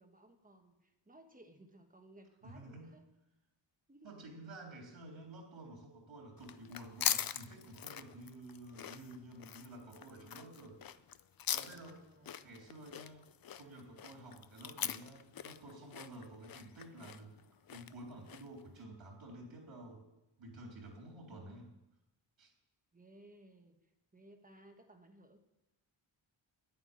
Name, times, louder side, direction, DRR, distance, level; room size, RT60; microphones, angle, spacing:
voice 1, 0.0-3.1 3.9-4.1 11.8-12.5 21.3-21.8 22.9-25.4, right 1 dB, 20° right, 5 dB, 1.3 m, -60 dB
voice 2, 2.4-3.0 4.0-10.8 11.5-12.1 12.4-13.2 13.5-17.4 17.7-20.0 20.4-21.7 22.4-22.5, right 1 dB, 80° right, 0 dB, 3.5 m, -51 dB
sound 1, 6.4-18.6, left 10 dB, 50° left, 0.5 m, -42 dB
9.6 x 9.2 x 9.8 m, 0.96 s
wide cardioid pair, 155°, 46 cm